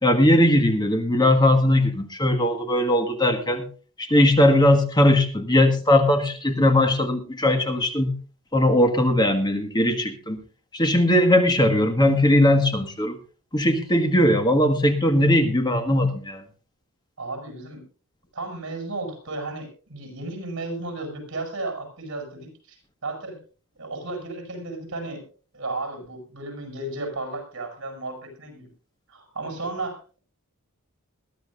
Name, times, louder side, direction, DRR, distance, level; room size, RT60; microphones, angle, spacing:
voice 1, 0.0-3.7 4.0-8.2 8.5-10.4 10.7-13.2 13.5-16.4, left 1 dB, 20° left, 6 dB, 1.5 m, -19 dB
voice 2, 17.2-17.8 18.3-23.4 23.7-25.2 25.5-28.7 29.1-30.0, right 2 dB, 60° right, 4 dB, 7.4 m, -34 dB
21.5 x 13.0 x 2.5 m, 0.37 s
head